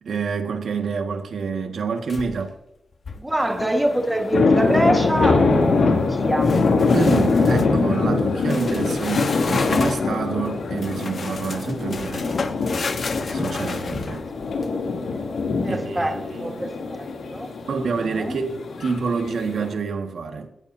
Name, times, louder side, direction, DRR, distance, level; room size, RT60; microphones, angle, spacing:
voice 1, 0.0-2.5 6.9-12.3 13.3-14.3 15.7-16.7 17.6-20.5, right 5 dB, 75° right, 1.7 m, -28 dB
sound 1, 2.1-2.6 2.9-3.3 6.4-7.7 8.4-10.1 10.8-14.7, left 4 dB, 45° left, 1.1 m, -31 dB
voice 2, 3.2-6.5 15.6-17.5 18.0-18.4, right 1 dB, 10° right, 1.5 m, -25 dB
sound 2, 3.4-19.7, left 4 dB, 80° left, 2.8 m, -23 dB
20.0 x 17.5 x 2.7 m
wide cardioid pair, 160°, 0 cm